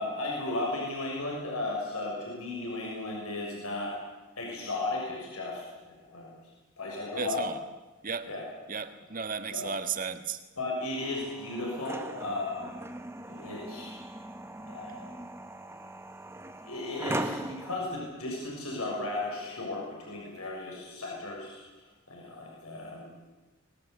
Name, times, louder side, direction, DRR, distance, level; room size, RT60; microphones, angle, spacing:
voice 1, 0.0-3.9 4.4-6.3 6.8-7.4 8.3-8.4 9.5-9.7 10.6-12.7 13.3-13.9 14.7-15.0 16.6-23.1, left 2 dB, 90° left, 6.6 m, -35 dB
voice 2, 7.2-7.5 8.0-8.3 8.7-10.4, right 5 dB, 40° right, 1.6 m, -34 dB
sound 1, 11.0-17.8, right 1 dB, 10° right, 1.4 m, -39 dB
24.5 x 20.5 x 8.4 m
head